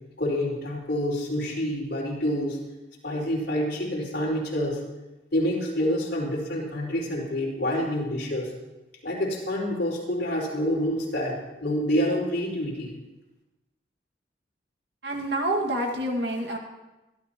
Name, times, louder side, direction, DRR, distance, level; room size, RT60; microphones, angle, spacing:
voice 1, 0.2-2.6 3.0-4.8 5.3-8.5 9.0-12.9, equal, 60° left, -3 dB, 4.7 m, -27 dB
voice 2, 15.0-16.6, right 1 dB, 70° right, 1 dB, 2.0 m, -27 dB
24.5 x 12.5 x 3.0 m, 1.0 s
head